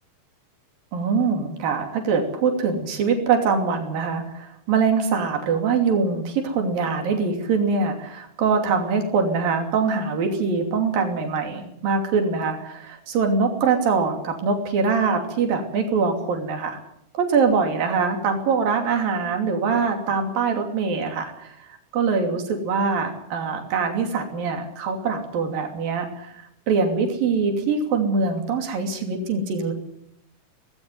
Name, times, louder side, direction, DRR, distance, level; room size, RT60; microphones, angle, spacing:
voice 1, 0.9-16.8 17.1-29.7, right 5 dB, 80° right, 4 dB, 4.6 m, -23 dB
19.5 x 16.5 x 9.4 m, 0.76 s
omnidirectional pair, 4.0 m